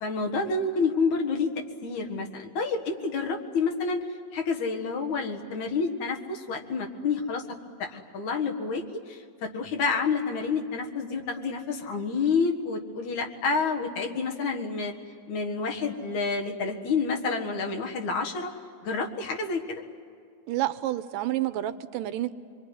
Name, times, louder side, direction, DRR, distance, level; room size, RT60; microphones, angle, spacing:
voice 1, 0.0-1.5 1.8-4.0 4.3-7.4 7.8-14.9 15.3-18.5 18.8-19.8, left 4 dB, 65° left, 2 dB, 3.0 m, -29 dB
voice 2, 20.5-22.4, right 14 dB, 85° right, 11 dB, 2.5 m, -29 dB
24.5 x 23.5 x 9.8 m, 2.4 s
omnidirectional pair, 3.8 m